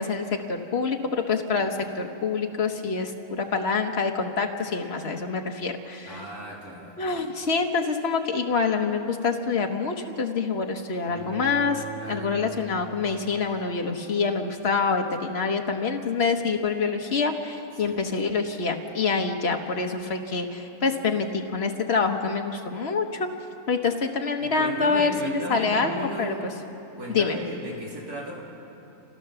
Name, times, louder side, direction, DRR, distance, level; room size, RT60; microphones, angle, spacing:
voice 1, 0.0-6.2 7.0-23.3 23.7-25.1 25.5-26.4 27.1-27.4, left 4 dB, 45° left, 4 dB, 1.5 m, -26 dB
voice 2, 6.0-7.2 12.0-12.3 17.8-18.0 24.4-26.4 27.0-28.4, right 1 dB, 90° right, -4 dB, 4.1 m, -36 dB
Bowed string instrument, 11.0-14.1, right 4 dB, 75° right, 4.5 m, -40 dB
27.5 x 16.0 x 7.0 m, 2.9 s
omnidirectional pair, 1.5 m